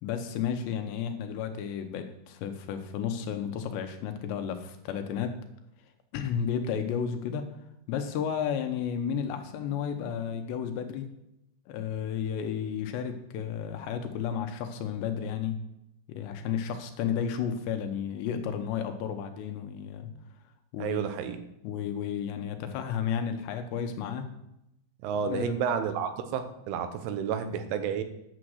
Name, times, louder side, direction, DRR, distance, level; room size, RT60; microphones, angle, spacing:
voice 1, 0.0-5.3 6.1-7.4 7.9-11.1 11.7-15.6 16.1-20.1 20.7-21.1 21.6-24.3 25.2-25.6, left 8 dB, 75° left, 7 dB, 3.0 m, -32 dB
voice 2, 20.8-21.4 25.0-28.0, right 7 dB, 85° right, 9 dB, 3.4 m, -31 dB
9.8 x 7.6 x 6.4 m, 0.83 s
omnidirectional pair, 5.4 m